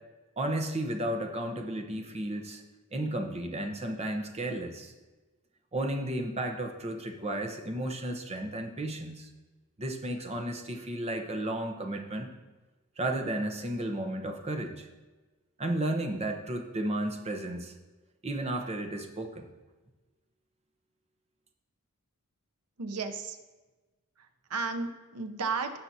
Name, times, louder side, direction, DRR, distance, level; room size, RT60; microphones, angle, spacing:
voice 1, 0.4-2.6 2.9-4.9 5.7-9.3 9.8-12.3 13.0-14.9 15.6-17.7 18.2-19.4, right 1 dB, 30° right, 4 dB, 0.9 m, -33 dB
voice 2, 22.8-23.4 24.2-25.8, right 4 dB, 80° right, 7 dB, 0.8 m, -34 dB
16.0 x 5.8 x 2.8 m, 1.2 s
head